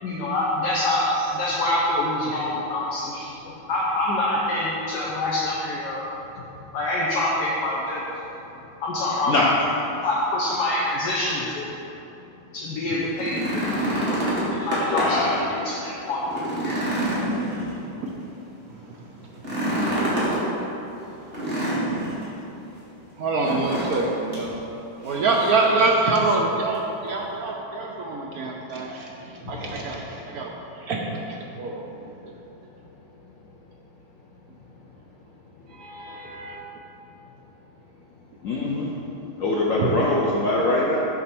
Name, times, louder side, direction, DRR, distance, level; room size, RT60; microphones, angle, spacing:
voice 1, 0.0-3.3 3.7-6.0 6.7-8.0 8.8-9.3 10.0-11.7 12.5-13.9 14.5-16.2 16.6-16.8, left 1 dB, 60° left, -5 dB, 1.3 m, -25 dB
sound 1, 13.0-15.3 15.7-15.8 16.2-18.1 19.3-20.4 21.3-22.2 23.4-24.0 24.3-24.5 25.0-25.6 26.7-26.8, right 1 dB, 30° right, 1.9 m, -26 dB
voice 2, 14.9-15.4 29.4-29.8 38.4-38.9 39.4-41.0, left 2 dB, 85° left, -4 dB, 0.7 m, -23 dB
voice 3, 23.2-24.6 25.0-29.0 29.5-30.5 30.9-31.2 31.6-31.8 35.8-36.6 39.8-39.9, right 3 dB, 75° right, -1 dB, 0.8 m, -25 dB
7.7 x 4.2 x 5.9 m, 3.0 s
omnidirectional pair, 2.3 m